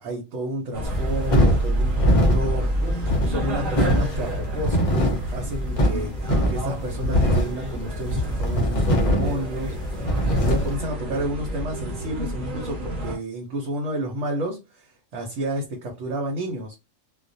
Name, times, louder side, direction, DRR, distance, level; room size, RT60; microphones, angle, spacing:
voice 1, 0.0-16.8, right 1 dB, 70° right, 1.0 m, -31 dB
sound 1, 0.7-13.2, right 1 dB, 45° right, 0.9 m, -29 dB
sound 2, 0.8-10.8, equal, 45° left, 0.5 m, -23 dB
2.3 x 2.1 x 2.6 m
omnidirectional pair, 1.3 m